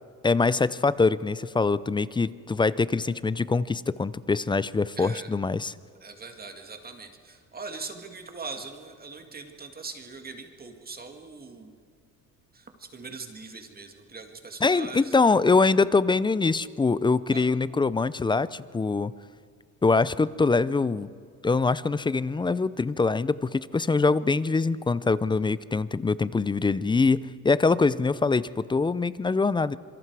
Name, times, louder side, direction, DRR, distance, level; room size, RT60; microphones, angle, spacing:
voice 1, 0.2-5.7 14.6-19.1 19.8-21.1 21.4-29.8, left 4 dB, 15° left, 18 dB, 0.4 m, -24 dB
voice 2, 5.0-5.3 6.0-11.7 12.5-15.2 17.3-17.4, right 4 dB, 25° right, 4 dB, 2.1 m, -41 dB
26.5 x 24.0 x 4.8 m, 2.1 s
cardioid pair, 110°, 35 cm